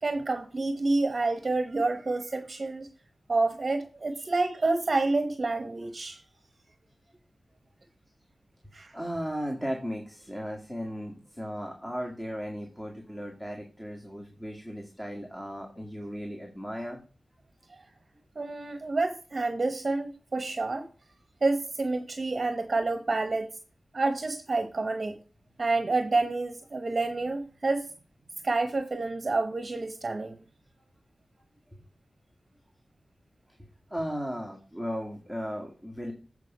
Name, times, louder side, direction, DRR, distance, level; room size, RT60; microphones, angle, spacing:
voice 1, 0.0-2.9 3.3-6.2 8.7-8.9 17.7-17.8 18.3-20.9 21.4-23.5 23.9-25.2 25.6-27.9 28.4-30.4, right 3 dB, 45° right, 0.9 m, -28 dB
voice 2, 8.9-17.0 33.9-36.1, equal, 10° left, 1.8 m, -36 dB
8.3 x 4.9 x 5.3 m
wide cardioid pair, 95°, 0 cm